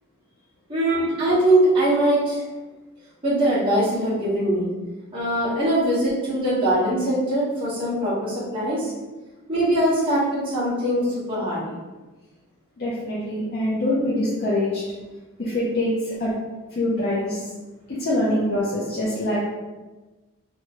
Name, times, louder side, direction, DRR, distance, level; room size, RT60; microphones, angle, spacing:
voice 1, 0.7-2.4 3.2-4.7 5.1-8.9 9.5-11.6, right 1 dB, 25° right, -11 dB, 1.2 m, -22 dB
voice 2, 12.8-14.8 15.4-16.3 16.7-17.5 17.9-19.4, left 1 dB, 50° left, -7 dB, 0.5 m, -24 dB
2.8 x 2.2 x 2.9 m, 1.2 s
head